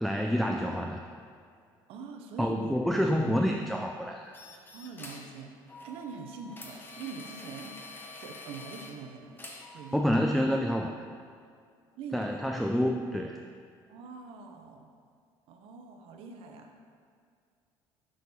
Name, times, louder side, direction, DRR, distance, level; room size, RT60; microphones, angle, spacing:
voice 1, 0.0-1.0 2.4-4.3 9.9-10.9 12.1-13.4, equal, ahead, 2 dB, 0.3 m, -28 dB
voice 2, 1.9-2.8 4.7-5.5 5.8-7.8 8.2-9.4 9.7-10.3 12.0-12.5 13.9-14.9 15.5-16.7, right 5 dB, 70° right, 4 dB, 0.8 m, -43 dB
sound 1, 4.3-5.3 5.7-8.9 9.4-10.0, left 3 dB, 20° left, 1.0 m, -46 dB
6.3 x 5.0 x 4.2 m, 2.2 s
cardioid pair, 100°, 10 cm